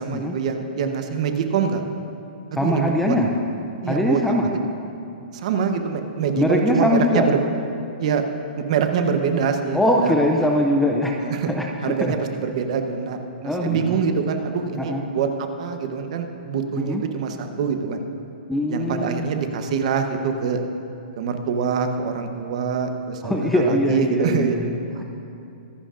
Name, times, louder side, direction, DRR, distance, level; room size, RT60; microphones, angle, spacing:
voice 1, 0.0-1.8 2.5-3.2 3.8-4.6 5.3-7.4 8.0-8.2 8.6-10.2 11.2-11.5 11.8-18.0 18.7-20.6 21.2-24.6 25.0-25.1, right 6 dB, 40° right, 6 dB, 0.9 m, -25 dB
voice 2, 2.5-3.3 3.9-4.5 6.4-7.3 9.7-11.1 11.5-12.1 13.4-14.0 14.8-15.0 16.8-17.0 18.5-19.3 23.2-25.0, left 1 dB, 5° left, 0 dB, 0.4 m, -22 dB
24.5 x 11.0 x 2.5 m, 2.7 s
hypercardioid pair, 170°, 5 cm